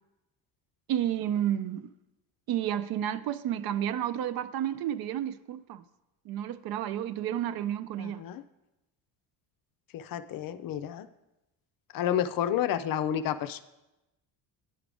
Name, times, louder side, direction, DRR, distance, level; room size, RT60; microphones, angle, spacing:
voice 1, 0.9-1.9 2.5-5.8 6.3-8.2, right 11 dB, 55° right, 0.5 m, -31 dB
voice 2, 8.0-8.4 9.9-11.1 11.9-13.6, left 10 dB, 50° left, 0.5 m, -30 dB
10.5 x 4.8 x 3.4 m
supercardioid pair, 70°, 45 cm